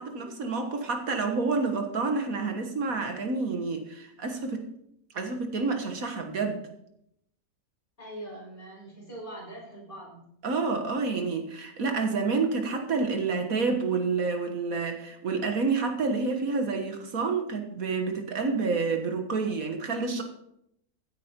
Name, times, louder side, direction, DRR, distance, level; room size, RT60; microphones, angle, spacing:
voice 1, 0.0-4.7 5.1-6.6 10.4-20.2, right 4 dB, 70° right, 5 dB, 1.8 m, -29 dB
voice 2, 8.0-10.2, right 1 dB, 35° left, -4 dB, 6.3 m, -43 dB
16.0 x 9.1 x 4.4 m, 0.77 s
omnidirectional pair, 1.6 m